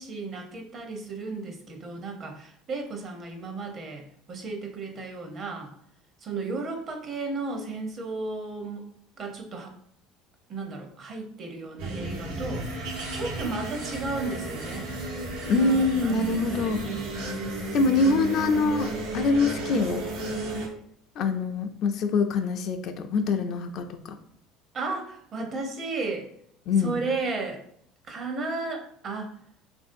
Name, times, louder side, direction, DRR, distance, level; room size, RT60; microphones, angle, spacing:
voice 1, 0.0-5.7 6.2-8.9 9.2-9.7 10.5-12.7 13.1-14.9 15.5-17.1 24.7-26.3 26.8-27.6 28.1-29.3, right 3 dB, 45° right, 3 dB, 0.7 m, -34 dB
sound 1, 11.8-20.7, right 2 dB, 85° right, 0.8 m, -33 dB
voice 2, 15.5-16.8 17.7-20.0 21.2-24.2 26.7-26.9, left 3 dB, 60° left, 7 dB, 0.3 m, -24 dB
3.0 x 2.6 x 2.6 m, 0.68 s
supercardioid pair, 90°, 0 cm